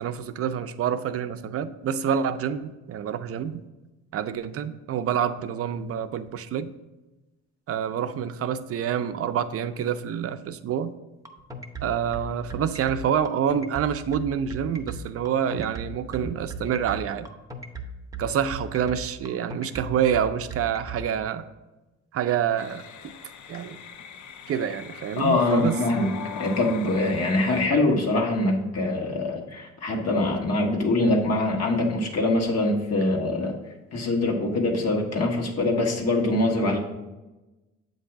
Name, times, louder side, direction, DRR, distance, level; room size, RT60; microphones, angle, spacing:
voice 1, 0.0-3.7 4.1-6.7 7.7-11.0 11.8-17.3 18.2-21.4 22.1-23.1 23.5-23.8 24.5-25.8, right 8 dB, 50° right, 10 dB, 0.5 m, -27 dB
sound 1, 11.2-21.0, right 2 dB, 10° right, 0.7 m, -37 dB
sound 2, 22.6-27.7, left 7 dB, 75° left, 0.6 m, -41 dB
voice 2, 25.2-26.1 26.4-33.5 33.9-36.8, left 2 dB, 55° left, 0 dB, 1.3 m, -23 dB
7.6 x 2.7 x 5.7 m, 1.1 s
cardioid pair, 90°, 30 cm